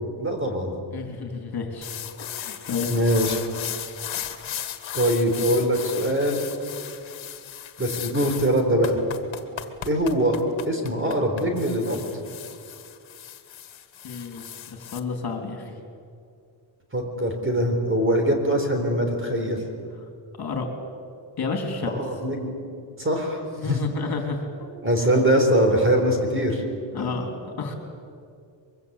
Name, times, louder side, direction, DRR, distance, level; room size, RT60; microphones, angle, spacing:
voice 1, 0.2-0.7 2.9-3.4 4.9-6.4 7.8-9.0 9.8-10.4 10.7-12.0 16.9-19.6 21.9-22.5 23.0-23.8 24.8-26.6 26.9-27.2, equal, 25° right, 4 dB, 4.0 m, -22 dB
voice 2, 0.9-1.9 2.4-2.9 14.0-15.7 20.4-20.7 21.4-22.0 23.6-24.7 26.9-27.7, left 4 dB, 55° left, 3 dB, 3.4 m, -31 dB
sound 1, 1.8-15.0, left 10 dB, 85° left, 1.8 m, -36 dB
24.0 x 23.0 x 8.3 m, 2.4 s
wide cardioid pair, 150°, 45 cm